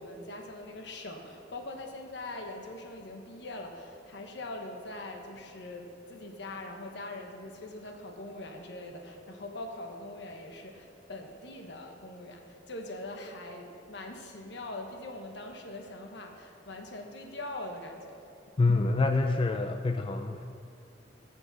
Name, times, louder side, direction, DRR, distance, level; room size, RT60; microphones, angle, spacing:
voice 1, 0.0-18.2, left 2 dB, 70° left, 3 dB, 1.1 m, -42 dB
voice 2, 18.6-20.4, left 3 dB, 30° left, 6 dB, 0.3 m, -26 dB
12.5 x 6.7 x 4.1 m, 2.6 s
head